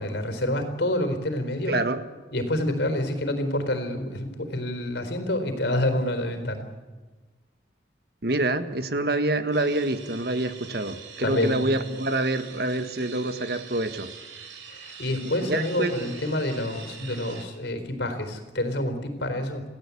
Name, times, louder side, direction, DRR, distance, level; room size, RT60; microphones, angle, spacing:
voice 1, 0.0-1.8 2.3-6.6 11.2-11.7 14.7-19.6, left 1 dB, 65° left, 8 dB, 4.2 m, -28 dB
voice 2, 1.7-2.0 8.2-14.1 15.4-16.1, right 2 dB, 55° right, 10 dB, 1.6 m, -26 dB
sound 1, 9.5-17.4, right 6 dB, 90° right, 5.5 m, -44 dB
28.5 x 17.5 x 8.5 m, 1.3 s
head